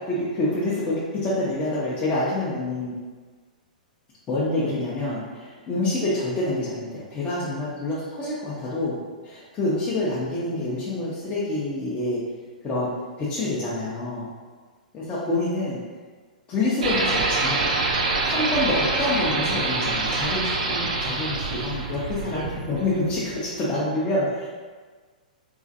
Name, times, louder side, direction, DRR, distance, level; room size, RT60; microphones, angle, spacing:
voice 1, 0.1-2.9 4.3-9.0 9.2-12.2 12.6-14.3 14.9-15.8 16.5-17.7 18.2-24.5, left 2 dB, 25° left, -8 dB, 0.6 m, -27 dB
sound 1, 16.8-23.4, right 3 dB, 70° right, 0.4 m, -26 dB
3.8 x 2.4 x 2.5 m, 1.5 s
figure-of-eight pair, 110°, 4 cm